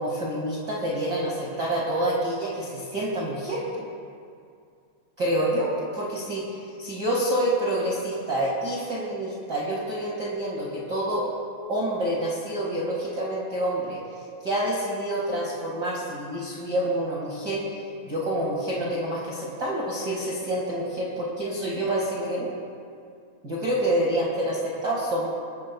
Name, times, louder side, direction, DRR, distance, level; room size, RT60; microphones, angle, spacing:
voice 1, 0.0-3.6 5.2-11.2 11.7-14.0 14.4-17.6 18.0-22.5 23.4-25.3, right 1 dB, 50° right, -6 dB, 1.2 m, -27 dB
25.5 x 13.0 x 2.3 m, 2.3 s
omnidirectional pair, 5.2 m